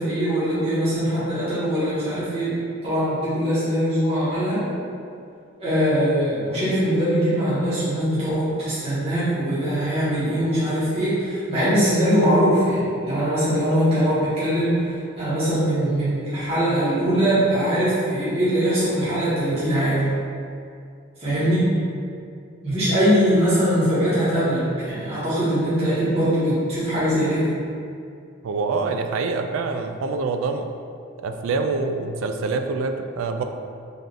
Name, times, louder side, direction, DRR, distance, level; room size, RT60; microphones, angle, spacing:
voice 1, 0.0-4.6 5.6-20.0 21.2-21.6 22.6-27.5, equal, 30° right, -13 dB, 1.2 m, -22 dB
voice 2, 28.4-30.6 31.2-33.4, right 4 dB, 85° right, 6 dB, 0.3 m, -26 dB
3.4 x 2.5 x 3.9 m, 2.4 s
head